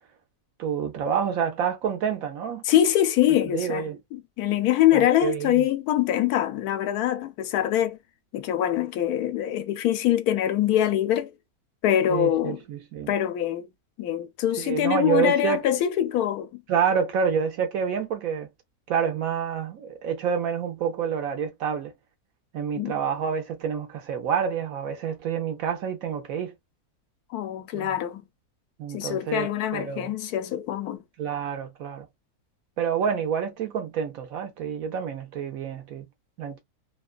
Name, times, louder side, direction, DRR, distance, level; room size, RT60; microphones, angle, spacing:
voice 1, 0.6-2.6 3.5-4.0 4.9-5.6 12.1-13.1 14.6-15.6 16.7-18.5 18.9-21.9 22.5-26.5 27.7-28.0 28.8-30.1 31.2-32.1 32.8-36.1 36.4-36.6, right 7 dB, 70° right, 1.1 m, -28 dB
voice 2, 2.6-8.0 8.3-11.3 11.8-12.6 13.1-13.7 14.0-16.6 22.8-22.9 27.3-28.2 28.9-31.0, left 11 dB, 85° left, 1.1 m, -24 dB
2.9 x 2.3 x 2.3 m
omnidirectional pair, 1.6 m